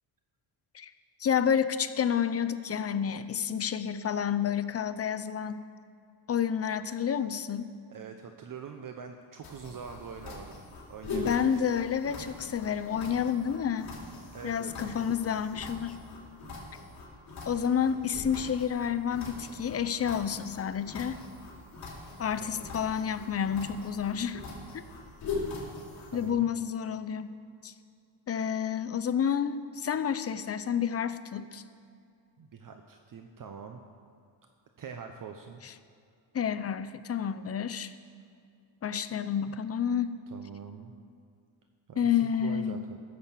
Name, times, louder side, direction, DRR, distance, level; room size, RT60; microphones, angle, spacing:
voice 1, 1.2-5.6 6.3-7.7 11.1-13.9 14.4-16.0 17.5-21.2 22.2-24.4 24.7-24.8 26.1-27.3 27.6-27.7 28.3-31.6 35.6-35.7 36.3-37.9 38.8-40.2 42.0-42.8, left 8 dB, 35° left, 11 dB, 0.5 m, -29 dB
voice 2, 7.9-11.6 14.3-15.2 22.1-22.8 26.1-26.5 32.4-33.8 34.8-35.6 40.3-40.9 41.9-43.0, right 6 dB, 45° right, 5 dB, 0.7 m, -44 dB
sound 1, 9.4-26.3, left 3 dB, 50° left, 3.5 m, -42 dB
15.5 x 6.6 x 7.3 m, 2.3 s
cardioid pair, 140°, 46 cm